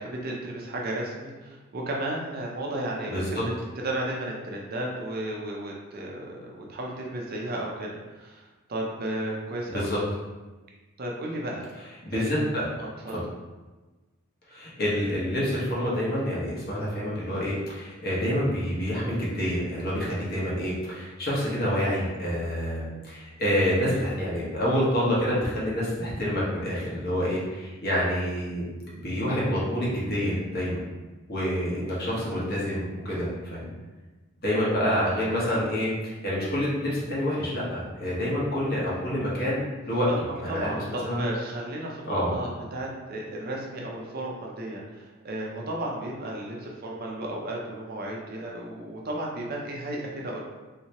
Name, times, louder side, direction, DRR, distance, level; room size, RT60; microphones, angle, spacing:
voice 1, 0.0-3.4 3.8-10.0 11.0-11.7 12.1-12.3 12.8-13.1 40.1-40.2 40.5-50.5, right 1 dB, 45° right, -2 dB, 0.5 m, -34 dB
voice 2, 3.1-3.4 9.7-10.0 12.0-12.7 14.5-28.7 28.9-30.8 31.3-33.7 34.4-40.1 40.3-40.7 41.0-41.2 42.1-42.3, equal, 50° left, -6 dB, 1.1 m, -27 dB
3.2 x 2.8 x 2.9 m, 1.2 s
head